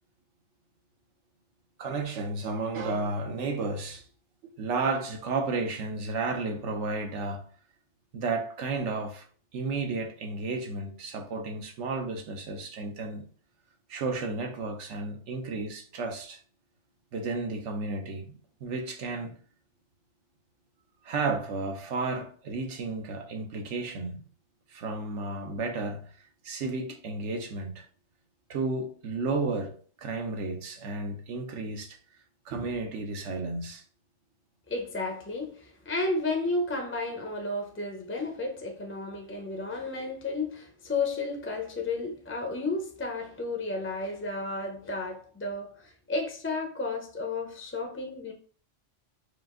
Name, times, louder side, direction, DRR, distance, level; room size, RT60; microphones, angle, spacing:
voice 1, 1.8-4.0 4.4-7.5 8.1-9.3 9.5-13.3 13.9-16.4 17.1-19.3 21.0-24.2 24.7-26.1 26.4-27.9 28.5-32.0 32.5-33.8, right 3 dB, 70° right, 1.0 m, -32 dB
voice 2, 34.7-48.3, left 3 dB, 15° left, 0.5 m, -32 dB
4.9 x 2.5 x 3.7 m
omnidirectional pair, 1.3 m